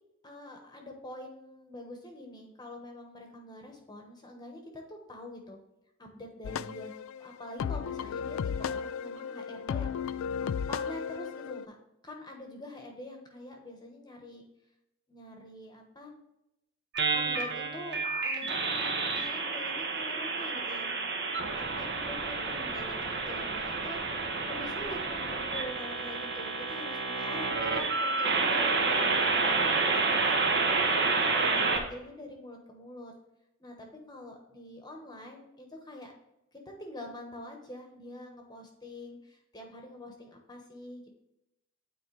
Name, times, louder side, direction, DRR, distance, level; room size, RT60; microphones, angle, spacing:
voice 1, 0.2-5.6 6.0-6.9 7.2-9.9 10.7-11.7 12.0-14.4 15.1-16.1 17.1-20.9 21.5-24.0 24.5-30.0 30.2-30.4 30.9-33.1 33.6-36.1 36.5-41.1, left 1 dB, 20° left, 2 dB, 1.1 m, -45 dB
sound 1, 6.4-11.6, left 7 dB, 65° left, 0.3 m, -34 dB
sound 2, 16.9-31.8, right 4 dB, 55° right, 1.3 m, -29 dB
9.2 x 4.5 x 3.2 m, 0.87 s
head